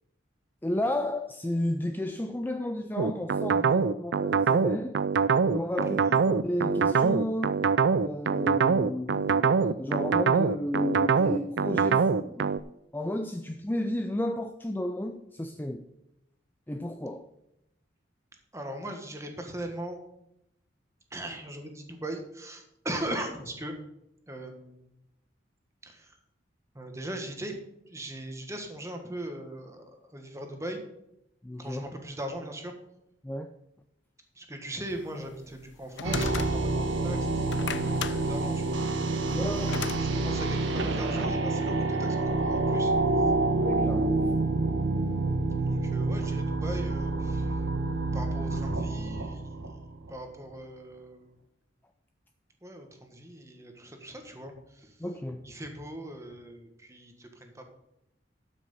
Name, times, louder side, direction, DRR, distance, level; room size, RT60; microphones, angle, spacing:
voice 1, 0.6-5.0 5.5-7.7 8.0-12.5 12.9-15.9 16.7-17.3 31.4-31.9 33.2-33.5 39.3-39.9 43.6-44.3 55.0-55.5, left 1 dB, 10° left, 0.4 m, -33 dB
sound 1, 3.0-12.6, right 5 dB, 65° right, 0.4 m, -24 dB
voice 2, 18.5-20.0 21.1-23.7 24.3-24.8 25.8-26.1 26.7-27.6 27.9-30.8 31.6-32.7 34.4-38.8 39.7-42.9 45.7-47.5 48.1-49.5 50.1-51.3 52.6-54.9 55.4-57.6, right 1 dB, 15° right, 1.5 m, -39 dB
sound 2, 35.2-36.9 37.3-40.0, left 6 dB, 70° left, 0.6 m, -36 dB
sound 3, 36.0-50.1, right 2 dB, 85° right, 1.2 m, -28 dB
12.0 x 5.9 x 5.6 m
head